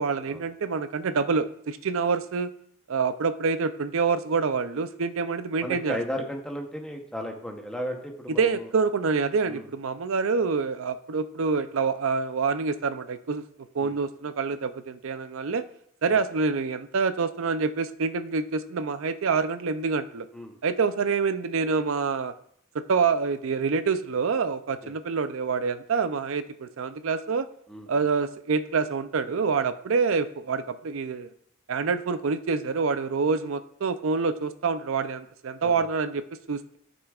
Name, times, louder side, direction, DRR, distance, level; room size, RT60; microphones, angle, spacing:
voice 1, 0.0-2.5 2.9-6.0 8.4-13.4 13.7-15.6 16.0-20.3 20.6-22.3 22.7-27.5 27.9-31.3 31.7-36.8, right 5 dB, 75° right, 11 dB, 0.5 m, -26 dB
voice 2, 5.6-8.7 9.4-9.7 13.8-14.0 16.1-16.2 20.3-20.5 24.8-24.9 27.7-28.0 35.6-35.9, equal, 5° left, 2 dB, 0.8 m, -35 dB
13.0 x 6.2 x 2.4 m, 0.69 s
head